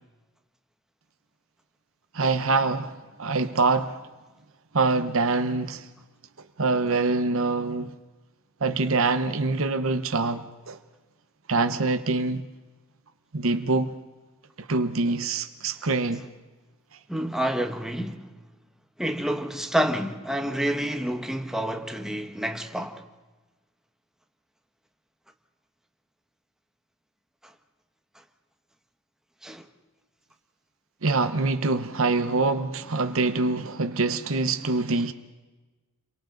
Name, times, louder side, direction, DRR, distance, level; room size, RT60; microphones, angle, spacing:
voice 1, 2.1-4.0 4.7-5.9 6.6-7.9 8.6-10.8 11.5-12.5 13.3-13.9 14.6-16.3 31.0-35.1, right 3 dB, 65° right, 0.9 m, -25 dB
voice 2, 17.1-18.3 19.0-23.0 27.4-27.5 29.4-29.6, right 1 dB, ahead, 1.3 m, -28 dB
29.5 x 23.5 x 3.9 m
head